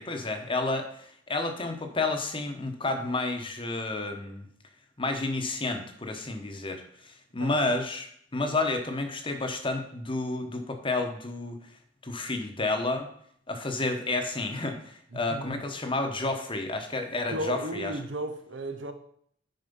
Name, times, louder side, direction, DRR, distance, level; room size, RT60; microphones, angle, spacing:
voice 1, 0.0-4.5 5.0-8.1 8.3-11.6 12.0-13.1 13.5-17.9, left 2 dB, 30° left, 6 dB, 1.1 m, -30 dB
voice 2, 15.1-15.6 17.3-18.9, right 1 dB, 75° right, 7 dB, 1.1 m, -34 dB
9.5 x 4.8 x 5.4 m, 0.65 s
head